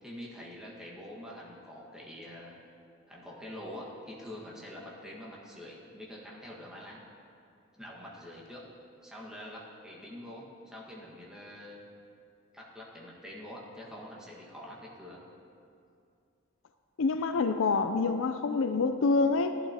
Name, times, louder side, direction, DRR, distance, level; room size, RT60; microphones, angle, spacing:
voice 1, 0.0-2.6 3.1-7.0 7.8-8.6 9.0-11.8 12.5-15.2, left 1 dB, 5° right, -4 dB, 1.6 m, -45 dB
voice 2, 17.0-19.6, left 4 dB, 65° left, 9 dB, 0.4 m, -27 dB
15.0 x 11.5 x 2.9 m, 2.5 s
head